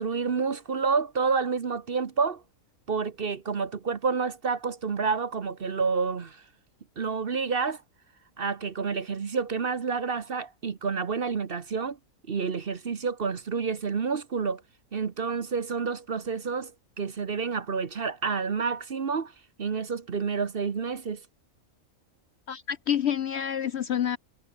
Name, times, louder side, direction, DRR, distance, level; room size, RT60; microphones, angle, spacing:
voice 1, 0.0-2.4 2.9-6.4 7.0-7.8 8.4-12.0 12.3-14.6 14.9-16.7 17.0-19.3 19.6-21.2, right 5 dB, 45° right, 1.1 m, -29 dB
voice 2, 22.5-24.2, left 9 dB, 60° left, 0.8 m, -28 dB
omnidirectional pair, 1.5 m